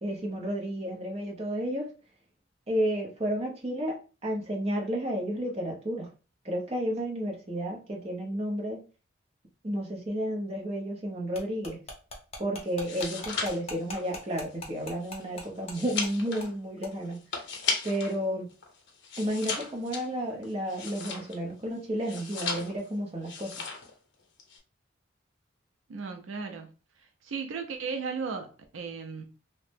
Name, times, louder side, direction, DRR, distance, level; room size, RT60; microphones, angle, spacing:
voice 1, 0.0-1.9 2.7-6.1 6.4-8.8 9.6-11.8 12.4-17.2 17.8-18.5 19.2-23.6, equal, 30° right, 0.7 m, -32 dB
sound 1, 11.3-15.8 16.0-16.1 16.4-16.5 16.8-16.9, left 2 dB, 30° left, 0.7 m, -40 dB
sound 2, 12.7-18.2 18.5-21.5 22.0-22.9 23.2-23.9 24.2-24.6, left 5 dB, 65° left, 0.7 m, -36 dB
voice 2, 25.9-26.7 27.2-29.2, right 5 dB, 80° right, 0.4 m, -35 dB
2.7 x 2.0 x 3.3 m
head